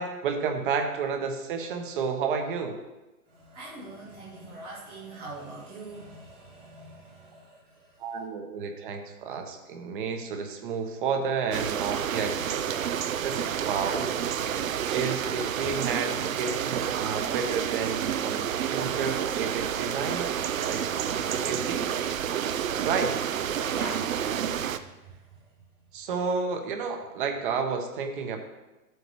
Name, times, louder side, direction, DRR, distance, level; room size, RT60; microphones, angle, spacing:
voice 1, 0.0-2.8 8.0-12.7 13.2-14.1 14.9-20.3 20.7-21.9 22.8-23.2 25.9-28.4, right 5 dB, 35° right, 5 dB, 1.2 m, -31 dB
voice 2, 3.3-8.0 23.7-25.4, right 2 dB, 10° right, -7 dB, 0.5 m, -44 dB
sound 1, 11.5-24.8, right 9 dB, 60° right, 0.7 m, -29 dB
12.0 x 7.8 x 3.2 m, 1.1 s
hypercardioid pair, 145°, 45 cm